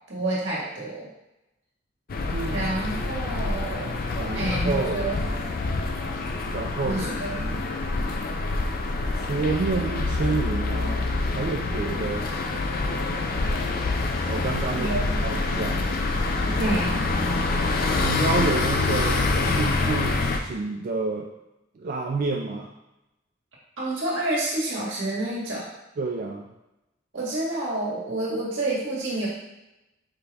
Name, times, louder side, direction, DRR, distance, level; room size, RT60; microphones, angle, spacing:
voice 1, 0.1-1.1 2.5-4.0 4.3-5.3 6.8-7.6 14.8-15.3 16.6-16.9 23.8-25.7 27.1-29.3, right 2 dB, 90° right, -6 dB, 1.6 m, -29 dB
sound 1, 2.1-20.4, left 3 dB, 50° left, 0.4 m, -26 dB
sound 2, 4.1-4.3 4.6-7.4, right 2 dB, 80° left, 1.0 m, -44 dB
voice 2, 4.2-5.1 6.5-7.2 9.2-12.3 14.3-15.9 18.0-21.3 21.8-22.7 26.0-26.5, right 4 dB, 50° right, 0 dB, 0.3 m, -29 dB
5.0 x 4.0 x 2.3 m, 0.95 s
head